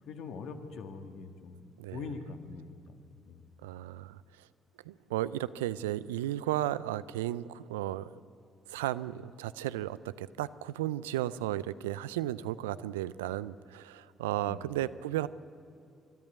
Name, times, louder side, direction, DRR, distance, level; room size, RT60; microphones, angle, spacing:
voice 1, 0.1-3.4 14.4-14.7, left 4 dB, 65° left, 7 dB, 1.7 m, -43 dB
voice 2, 3.6-4.2 4.9-8.1 8.7-15.3, right 13 dB, 80° right, 17 dB, 0.4 m, -34 dB
24.0 x 13.5 x 9.3 m, 2.5 s
hypercardioid pair, 40°, 0 cm